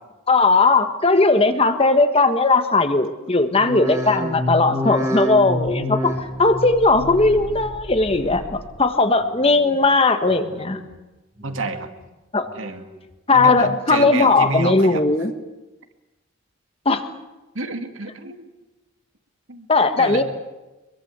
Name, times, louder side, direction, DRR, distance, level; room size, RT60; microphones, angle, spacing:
voice 1, 0.3-6.1 6.4-10.8 12.3-12.5 13.3-15.3 16.8-17.0 19.7-20.2, left 3 dB, 30° left, 8 dB, 1.4 m, -18 dB
sound 1, 3.5-8.9 9.2-9.8 10.2-10.9 11.3-12.0 12.4-13.1 13.6-14.1 14.7-14.8, left 1 dB, 15° right, 2.9 m, -30 dB
voice 2, 11.4-11.9 12.6-12.8 13.3-15.0 17.5-18.4 19.5-19.7 19.9-20.2, right 2 dB, 70° right, 6 dB, 2.3 m, -28 dB
24.5 x 22.5 x 8.2 m, 1.1 s
head